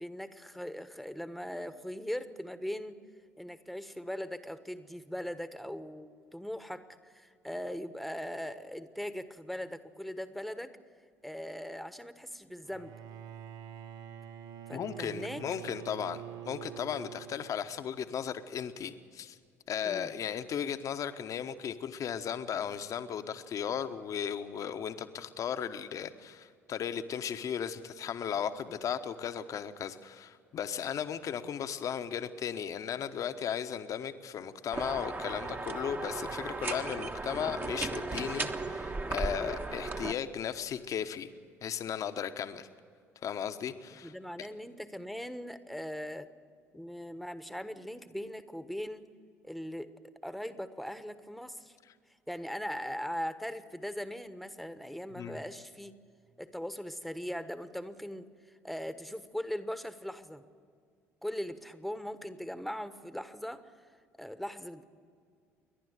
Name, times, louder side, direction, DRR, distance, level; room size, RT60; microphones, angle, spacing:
voice 1, 0.0-3.0 3.4-10.7 11.2-12.9 14.7-15.4 19.8-20.1 44.0-46.3 46.7-49.0 49.4-49.9 50.2-51.8 52.3-55.9 56.4-58.3 58.6-60.4 61.2-63.6 64.2-64.8, equal, ahead, 12 dB, 1.2 m, -40 dB
Bowed string instrument, 12.6-17.9, right 11 dB, 55° right, 0.7 m, -46 dB
voice 2, 14.7-19.4 19.7-41.3 41.6-42.7 43.2-44.1 55.2-55.4, left 8 dB, 50° left, 9 dB, 1.1 m, -36 dB
sound 1, 34.7-40.1, right 3 dB, 25° right, 1.3 m, -36 dB
29.0 x 11.5 x 8.1 m, 2.2 s
figure-of-eight pair, 55°, 7 cm